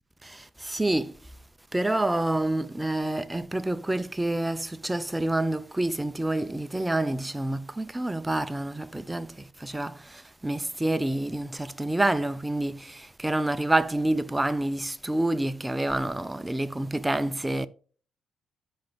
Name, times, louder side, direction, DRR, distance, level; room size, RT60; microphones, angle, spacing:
voice 1, 0.2-1.2 1.7-17.7, right 1 dB, 10° right, 0.5 m, -28 dB
13.5 x 5.1 x 2.4 m
cardioid pair, 90°, 0 cm